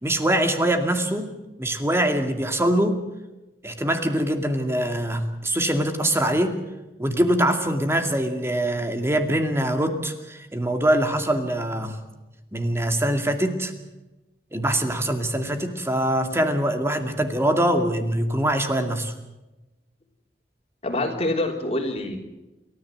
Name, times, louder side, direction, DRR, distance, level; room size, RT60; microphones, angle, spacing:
voice 1, 0.0-1.3 1.6-3.0 3.6-6.5 7.0-12.0 12.5-13.7 14.5-19.1, right 1 dB, 15° right, 6 dB, 2.3 m, -23 dB
voice 2, 20.8-22.2, left 1 dB, 35° left, 2 dB, 3.3 m, -26 dB
29.0 x 14.0 x 7.8 m, 1.0 s
head